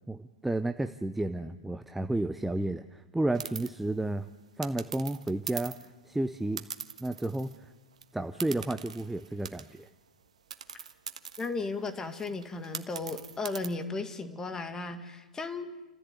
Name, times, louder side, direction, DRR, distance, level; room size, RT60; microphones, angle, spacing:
voice 1, 0.1-4.3 4.6-5.8 6.0-6.6 7.0-7.7 8.1-9.9, right 2 dB, 5° right, 9 dB, 0.7 m, -32 dB
sound 1, 3.3-3.7 4.6-5.9 6.6-7.6 7.9-8.0 8.4-9.9 10.5-13.7, right 7 dB, 65° right, 1.4 m, -42 dB
voice 2, 11.4-15.7, left 3 dB, 15° left, 8 dB, 2.0 m, -35 dB
29.5 x 15.0 x 8.2 m, 1.2 s
figure-of-eight pair, 100°, 4 cm